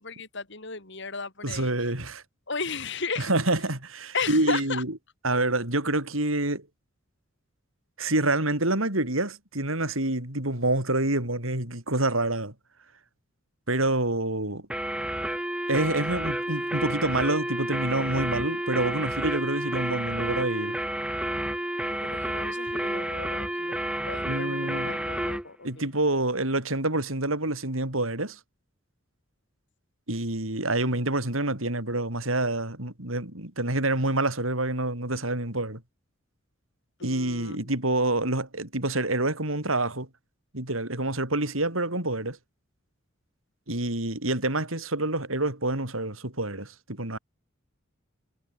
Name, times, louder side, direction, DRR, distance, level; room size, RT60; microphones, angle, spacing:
voice 1, 0.0-1.7 2.5-3.3 4.1-4.8 21.9-25.8 37.0-37.6, left 4 dB, 60° left, 7.3 m, -35 dB
voice 2, 1.4-2.2 3.2-4.9 5.2-6.6 8.0-12.5 13.7-14.7 15.7-20.8 24.2-25.0 25.6-28.4 30.1-35.8 37.0-40.1 40.5-42.4 43.7-47.2, right 2 dB, 85° right, 6.4 m, -27 dB
sound 1, 14.7-25.5, right 1 dB, 5° right, 1.6 m, -30 dB
head